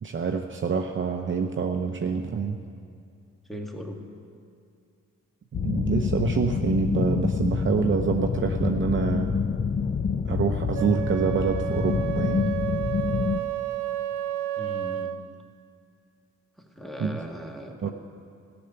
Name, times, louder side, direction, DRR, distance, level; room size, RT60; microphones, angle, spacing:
voice 1, 0.0-2.6 5.6-9.3 10.2-12.4 17.0-17.2 17.8-17.9, right 5 dB, 40° right, 4 dB, 0.8 m, -26 dB
voice 2, 3.5-4.0 14.6-15.1 16.6-17.9, equal, ahead, 2 dB, 1.8 m, -38 dB
sound 1, 5.5-13.4, left 6 dB, 30° left, 0.6 m, -27 dB
Wind instrument woodwind instrument, 10.7-15.2, right 13 dB, 80° right, 0.8 m, -31 dB
13.5 x 7.1 x 9.9 m, 2.4 s
cardioid pair, 65°, 29 cm